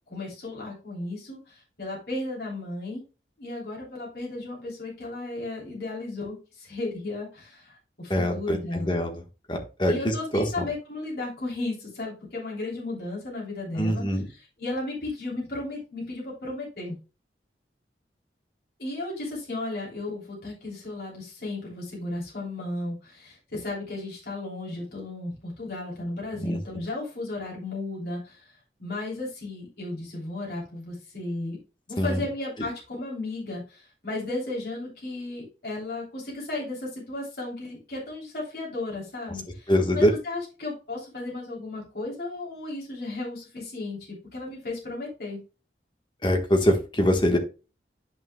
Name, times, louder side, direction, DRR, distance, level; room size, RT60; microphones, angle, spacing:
voice 1, 0.1-3.0 3.4-8.9 9.9-17.0 18.8-28.5 28.8-31.6 31.9-45.4, left 2 dB, 60° left, -5 dB, 3.3 m, -34 dB
voice 2, 8.1-9.2 9.5-10.7 13.8-14.3 26.4-26.6 32.0-32.2 39.7-40.1 46.2-47.4, equal, 25° left, 4 dB, 1.3 m, -24 dB
10.5 x 5.8 x 2.3 m, 0.33 s
head